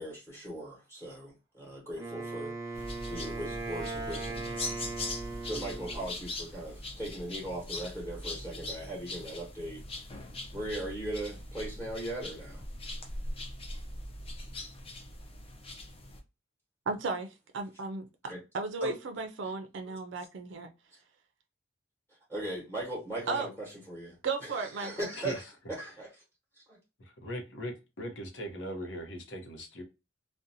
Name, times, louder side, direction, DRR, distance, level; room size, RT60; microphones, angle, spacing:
voice 1, 0.0-4.7 5.4-10.1 10.5-12.7 18.3-18.4 18.8-19.0 22.3-25.4 25.7-26.1 26.6-26.8, right 1 dB, 10° left, 1.1 m, -39 dB
Wind instrument woodwind instrument, 2.0-6.1, right 3 dB, 20° right, 0.8 m, -38 dB
sound 1, 2.7-16.2, left 1 dB, 30° left, 0.4 m, -41 dB
voice 2, 16.9-20.7 23.3-23.5 24.2-25.1, right 4 dB, 65° right, 0.4 m, -35 dB
voice 3, 27.0-29.8, equal, 65° left, 0.8 m, -39 dB
2.6 x 2.1 x 2.6 m
head